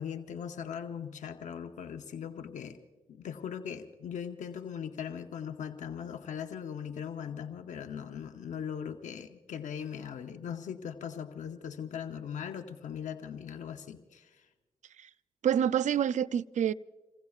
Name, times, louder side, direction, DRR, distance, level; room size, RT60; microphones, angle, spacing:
voice 1, 0.0-2.8 3.1-14.5, left 8 dB, 90° left, 0.8 m, -39 dB
voice 2, 15.4-16.7, right 9 dB, 80° right, 0.4 m, -27 dB
27.5 x 20.0 x 2.4 m
cardioid pair, 50°, 12 cm